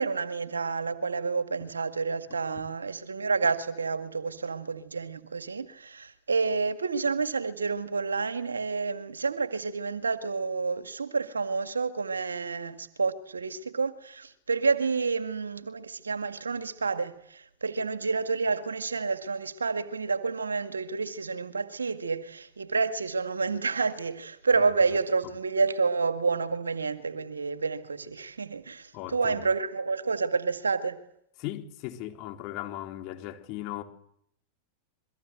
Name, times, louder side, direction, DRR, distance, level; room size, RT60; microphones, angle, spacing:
voice 1, 0.0-31.0, right 4 dB, 75° right, 2.0 m, -29 dB
voice 2, 28.9-29.5 31.4-33.8, left 14 dB, 40° left, 3.8 m, -37 dB
29.0 x 23.5 x 7.9 m
figure-of-eight pair, 90°, 0 cm